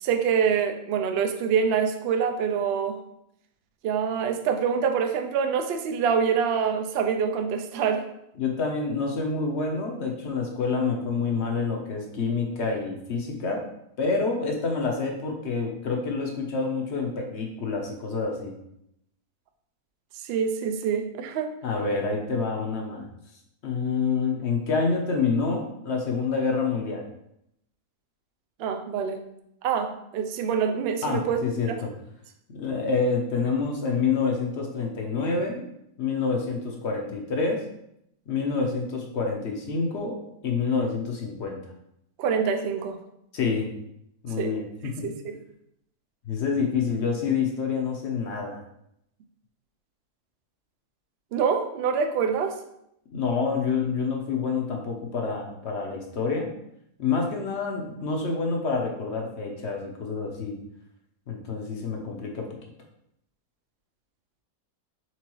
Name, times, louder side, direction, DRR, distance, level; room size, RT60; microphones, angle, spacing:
voice 1, 0.0-3.0 3.8-8.1 20.2-21.5 28.6-29.2 29.6-31.8 42.2-43.0 44.4-44.5 45.0-45.4 51.3-52.6, right 6 dB, 70° right, 6 dB, 0.6 m, -25 dB
voice 2, 8.4-13.6 14.0-18.5 21.6-23.1 23.6-27.0 31.0-31.7 32.5-35.7 36.0-37.6 38.3-40.2 40.4-41.6 43.3-43.7 44.2-45.1 46.2-48.6 53.1-56.5 57.0-60.6 61.3-62.5, left 4 dB, 55° left, 2 dB, 0.9 m, -27 dB
4.5 x 3.8 x 3.0 m, 0.77 s
omnidirectional pair, 1.6 m